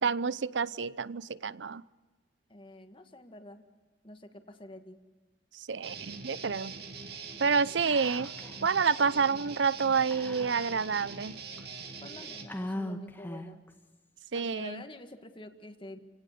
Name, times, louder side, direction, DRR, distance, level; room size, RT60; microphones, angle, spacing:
voice 1, 0.0-1.8 5.5-6.7 7.4-8.3 8.6-11.4 14.3-14.8, right 5 dB, 80° right, 18 dB, 0.7 m, -29 dB
voice 2, 2.5-3.6 4.0-5.0 12.0-13.6 14.3-16.0, left 1 dB, 30° left, 6 dB, 1.9 m, -47 dB
Guitar, 5.8-12.5, right 5 dB, 60° right, 2.7 m, -43 dB
Whispering, 7.9-8.6 8.9-9.0 10.1-11.0 11.6-11.7 12.5-13.7, left 1 dB, 10° left, 1.6 m, -39 dB
29.5 x 18.0 x 6.8 m, 1.3 s
head